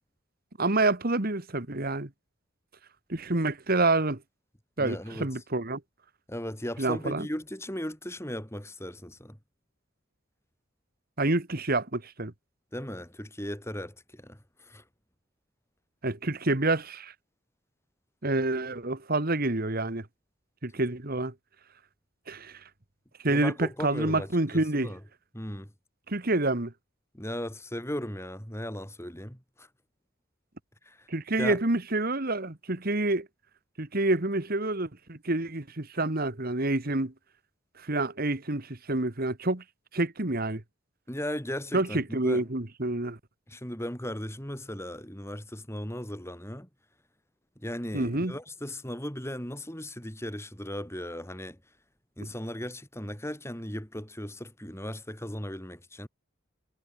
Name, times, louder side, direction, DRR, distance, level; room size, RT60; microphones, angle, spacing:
voice 1, 0.6-2.1 3.1-4.2 4.8-5.8 6.8-7.3 11.2-12.3 16.0-17.1 18.2-20.1 20.6-21.3 22.3-22.5 23.2-24.9 26.1-26.7 31.1-33.3 33.8-37.1 37.8-39.6 39.9-40.6 41.7-43.2 47.9-48.3, right 2 dB, 45° right, 1.7 m, -28 dB
voice 2, 4.8-5.3 6.3-9.4 12.7-14.8 23.3-25.0 25.3-25.7 27.1-29.7 30.8-31.1 31.4-31.6 41.1-42.4 43.5-46.7 47.6-51.6 52.2-56.1, equal, 10° left, 6.3 m, -37 dB
head